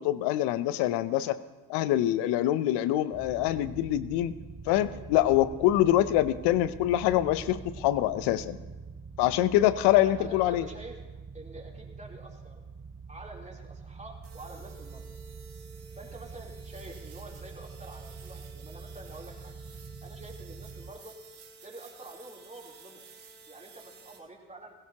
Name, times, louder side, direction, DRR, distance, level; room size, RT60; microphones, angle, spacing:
voice 1, 0.0-1.4 1.7-4.3 4.7-8.6 9.2-10.7, left 13 dB, 85° left, 15 dB, 0.6 m, -25 dB
sound 1, 3.1-20.9, right 5 dB, 55° right, 5.7 m, -45 dB
voice 2, 9.9-11.0 11.3-12.6 13.1-15.1 15.9-19.5 20.0-21.1 21.6-23.1 23.5-24.7, right 2 dB, 15° right, -2 dB, 3.4 m, -47 dB
sound 2, 14.2-24.2, right 4 dB, 75° right, 2.2 m, -52 dB
16.5 x 16.0 x 2.9 m, 1.2 s
supercardioid pair, 50°, 40 cm